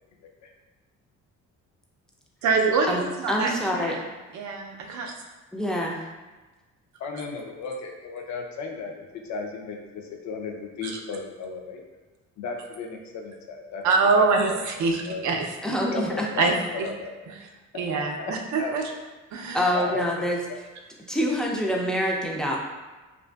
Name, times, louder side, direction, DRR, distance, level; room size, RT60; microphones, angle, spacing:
voice 1, 2.4-4.0 4.3-5.1 10.8-11.0 13.8-15.5 16.4-16.9 17.3-17.4 17.7-18.8 19.3-19.7, right 4 dB, 70° right, 2 dB, 0.5 m, -25 dB
voice 2, 3.3-4.0 5.5-6.0 15.6-16.3 19.5-20.4 21.1-22.6, equal, ahead, -2 dB, 0.4 m, -25 dB
voice 3, 7.0-11.8 12.4-14.6 15.0-15.3 15.9-17.1 17.7-18.3 18.6-18.9 19.7-20.1, left 4 dB, 65° left, 2 dB, 0.5 m, -35 dB
2.5 x 2.4 x 2.2 m, 1.2 s
cardioid pair, 90°, 30 cm